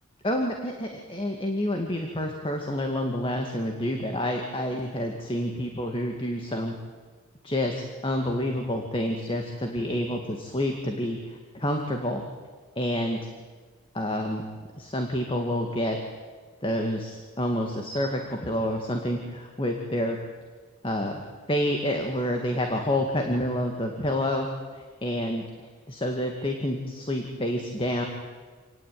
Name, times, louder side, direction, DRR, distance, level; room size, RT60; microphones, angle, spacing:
voice 1, 0.2-6.7 7.4-11.2 11.5-12.2 12.8-13.2 13.9-14.4 14.8-16.0 16.6-20.2 20.8-21.2 21.5-25.5 25.9-28.1, left 1 dB, 25° left, 3 dB, 2.1 m, -28 dB
28.0 x 18.5 x 9.4 m, 1.4 s
head